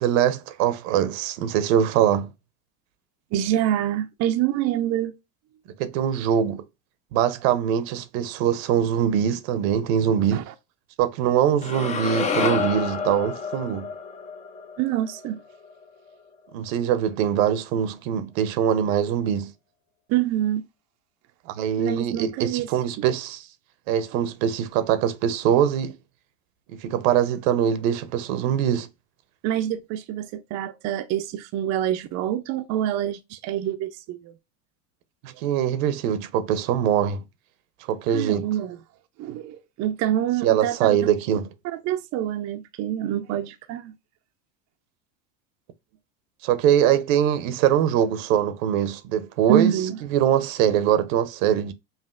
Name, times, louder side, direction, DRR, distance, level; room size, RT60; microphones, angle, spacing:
voice 1, 0.0-2.3 5.8-6.6 7.1-10.5 11.0-13.9 16.5-19.5 21.5-23.5 23.9-25.9 26.8-28.9 35.2-37.2 37.9-38.5 40.4-41.5 46.4-49.7 50.1-51.7, right 9 dB, 70° right, 0.7 m, -22 dB
voice 2, 3.3-5.1 10.3-10.5 14.8-15.4 20.1-20.6 21.8-22.7 23.0-23.1 29.4-34.3 38.1-38.8 39.2-41.0 41.7-43.9 49.5-50.0, right 11 dB, 40° right, 0.5 m, -26 dB
sound 1, 11.6-15.8, left 5 dB, 20° left, 0.4 m, -29 dB
5.5 x 2.5 x 2.3 m
supercardioid pair, 115°, 41 cm